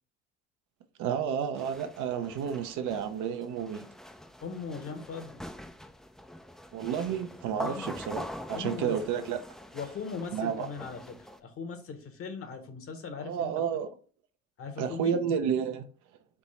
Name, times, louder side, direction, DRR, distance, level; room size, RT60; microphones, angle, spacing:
voice 1, 1.0-3.8 6.7-9.4 10.3-10.7 13.2-13.9 14.8-15.9, right 8 dB, 70° right, 0.7 m, -31 dB
sound 1, 1.5-11.4, left 1 dB, ahead, 0.4 m, -44 dB
voice 2, 4.4-5.4 7.5-7.9 8.5-9.2 9.7-13.5 14.6-15.2, left 5 dB, 45° left, 1.1 m, -39 dB
3.6 x 2.9 x 4.1 m
hypercardioid pair, 70°, 31 cm